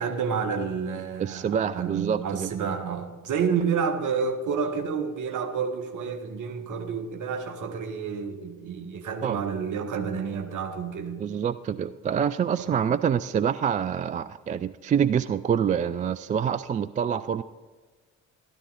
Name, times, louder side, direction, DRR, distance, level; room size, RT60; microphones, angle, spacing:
voice 1, 0.0-11.3 12.5-12.9, right 6 dB, 50° right, 1.5 m, -30 dB
voice 2, 1.2-2.5 9.2-9.4 11.2-17.4, right 8 dB, 20° right, 0.3 m, -26 dB
12.5 x 12.5 x 4.0 m
figure-of-eight pair, 45°, 39 cm